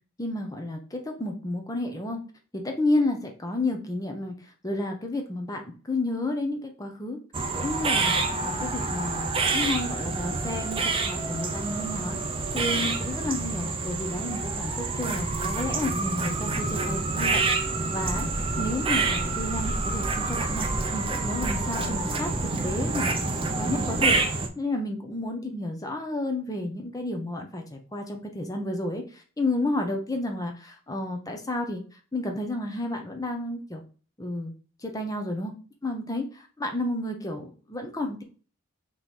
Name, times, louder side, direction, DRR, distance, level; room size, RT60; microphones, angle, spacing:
voice 1, 0.2-2.2 2.5-4.3 4.6-7.2 7.5-8.1 8.4-12.2 12.5-17.4 17.9-20.7 20.9-22.3 22.6-24.2 24.6-31.8 32.1-33.8 34.2-34.5 34.8-35.5 35.8-36.3 36.6-38.2, left 2 dB, 15° left, 3 dB, 0.7 m, -31 dB
sound 1, 7.3-24.5, right 3 dB, 25° right, 0.5 m, -27 dB
3.7 x 3.1 x 4.2 m, 0.39 s
head